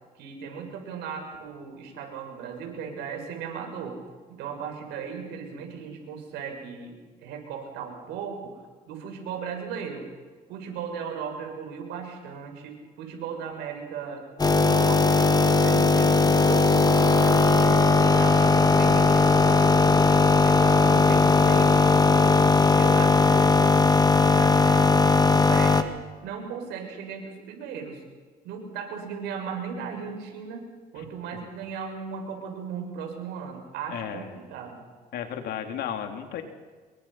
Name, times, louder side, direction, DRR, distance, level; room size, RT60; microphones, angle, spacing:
voice 1, 0.1-4.0 4.3-6.9 7.2-10.1 10.5-14.2 14.5-17.9 18.1-20.2 20.4-22.0 22.3-23.9 24.3-24.9 25.3-28.0 28.4-34.8, right 6 dB, 90° right, 3 dB, 7.1 m, -37 dB
sound 1, 14.4-25.8, left 4 dB, 25° left, 2.0 m, -19 dB
voice 2, 33.9-34.2 35.1-36.4, left 9 dB, 75° left, 5 dB, 3.5 m, -33 dB
27.5 x 23.5 x 5.9 m, 1.4 s
cardioid pair, 110°, 17 cm